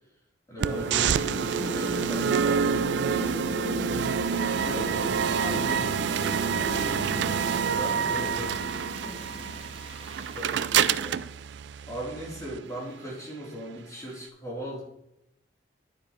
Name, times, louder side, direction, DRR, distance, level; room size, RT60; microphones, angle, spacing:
voice 1, 0.5-4.1 7.3-8.5 9.0-9.3 10.1-11.2 11.9-14.8, right 1 dB, 20° left, -5 dB, 3.8 m, -39 dB
sound 1, 0.6-9.9, equal, ahead, 3.5 m, -36 dB
sound 2, 0.6-12.6, right 7 dB, 65° right, 0.4 m, -28 dB
sound 3, 4.2-10.7, right 3 dB, 30° right, 1.4 m, -47 dB
voice 2, 4.6-6.7 7.6-7.8 8.1-8.5 10.5-10.6, left 2 dB, 80° left, 1 dB, 2.1 m, -39 dB
9.9 x 9.4 x 3.3 m, 0.81 s
head